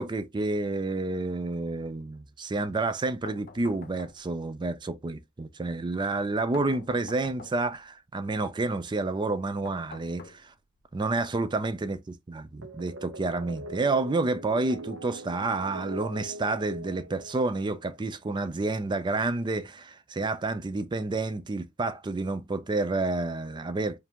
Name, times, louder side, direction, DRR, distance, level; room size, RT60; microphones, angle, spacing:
voice 1, 0.0-10.5 10.9-12.0 12.3-24.0, right 3 dB, 20° right, 0.4 m, -29 dB
sound 1, 3.3-4.5 6.5-7.8 9.6-10.8, left 4 dB, 45° left, 0.7 m, -47 dB
sound 2, 12.6-17.8, right 2 dB, 70° right, 0.9 m, -42 dB
4.8 x 2.6 x 3.6 m
head